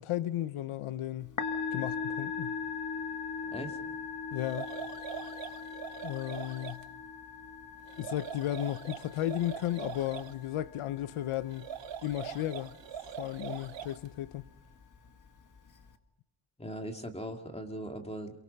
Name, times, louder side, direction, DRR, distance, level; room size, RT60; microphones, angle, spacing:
voice 1, 0.0-1.3 1.7-2.6 4.3-4.7 6.0-6.9 8.0-11.7 12.0-12.7 13.2-14.5, left 13 dB, 80° left, 0.9 m, -34 dB
Musical instrument, 1.2-15.9, left 5 dB, 40° left, 1.8 m, -41 dB
voice 2, 3.4-3.8 16.6-18.4, equal, 10° left, 2.4 m, -39 dB
sound 1, 4.4-6.8 7.9-10.3 11.5-14.1, right 9 dB, 60° right, 1.0 m, -43 dB
27.5 x 24.0 x 5.3 m
cardioid pair, 125°, 49 cm